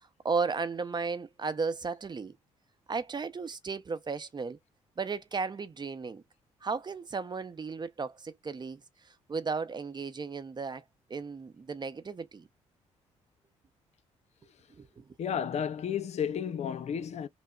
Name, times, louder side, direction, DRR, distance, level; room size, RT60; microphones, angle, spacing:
voice 1, 0.2-2.4 2.9-4.6 5.0-6.2 6.6-10.8 11.1-12.5 14.7-15.0, right 4 dB, 35° right, 0.7 m, -35 dB
voice 2, 15.2-17.3, left 8 dB, 55° left, 0.5 m, -32 dB
5.6 x 2.1 x 2.2 m
supercardioid pair, 60°, 13 cm